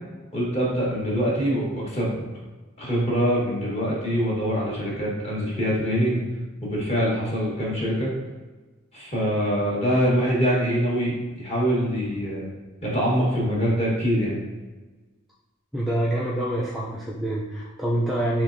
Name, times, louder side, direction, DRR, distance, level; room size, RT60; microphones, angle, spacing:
voice 1, 0.3-2.2 2.8-6.2 6.6-8.1 8.9-12.5 12.8-14.4, equal, 30° left, -5 dB, 1.3 m, -24 dB
voice 2, 15.7-18.4, right 1 dB, ahead, -7 dB, 0.4 m, -26 dB
5.0 x 3.0 x 2.6 m, 1.3 s
head